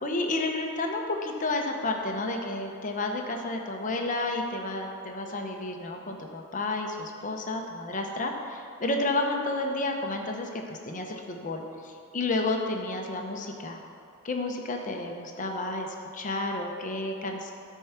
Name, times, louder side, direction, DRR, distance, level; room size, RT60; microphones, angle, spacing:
voice 1, 0.0-13.8 14.2-17.5, left 2 dB, 35° left, 2 dB, 0.8 m, -31 dB
13.0 x 4.6 x 5.7 m, 2.4 s
head